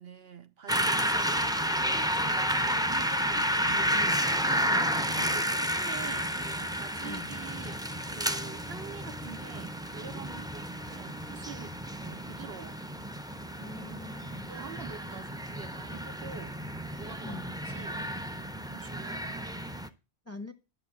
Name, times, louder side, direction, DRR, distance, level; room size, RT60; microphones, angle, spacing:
voice 1, 0.0-4.2 5.2-6.4 6.6-7.8 8.1-11.7 12.0-12.8 14.5-16.6 16.9-17.4 17.7-18.1 18.7-19.4, right 7 dB, 65° right, 1.1 m, -46 dB
sound 1, 0.7-19.9, equal, 5° right, 0.5 m, -31 dB
voice 2, 4.6-5.0 7.0-7.3 13.6-14.6 17.2-17.6 20.2-20.5, left 3 dB, 15° left, 0.9 m, -43 dB
11.0 x 6.1 x 6.0 m
omnidirectional pair, 1.1 m